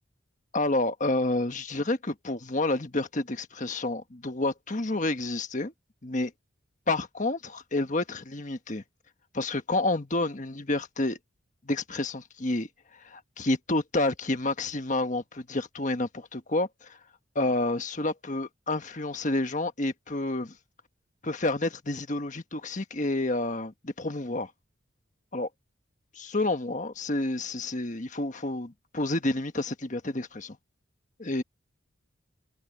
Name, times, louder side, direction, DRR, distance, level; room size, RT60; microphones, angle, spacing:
voice 1, 0.5-5.7 6.0-6.3 6.9-8.8 9.3-11.2 11.6-12.7 13.0-17.0 17.3-20.5 21.2-24.5 25.3-25.5 26.1-30.6 31.2-31.4, left 2 dB, 40° left, 1.4 m, -29 dB
head